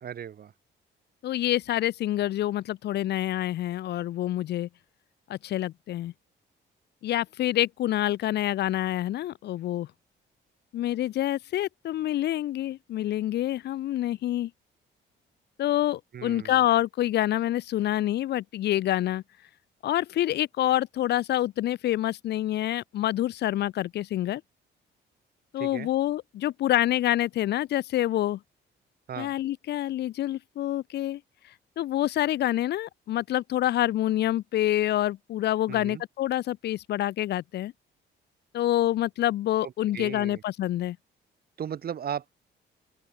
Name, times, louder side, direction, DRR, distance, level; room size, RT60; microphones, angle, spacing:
voice 1, 0.0-0.5 16.1-16.6 25.6-25.9 29.1-29.3 35.7-36.0 39.6-40.4 41.6-42.3, right 9 dB, 50° right, 1.1 m, -36 dB
voice 2, 1.2-4.7 5.3-6.1 7.0-9.9 10.7-14.5 15.6-19.2 19.8-24.4 25.5-28.4 29.2-31.2 31.8-37.7 38.5-41.0, left 13 dB, 60° left, 0.4 m, -27 dB
open air
cardioid pair, 90°, 20 cm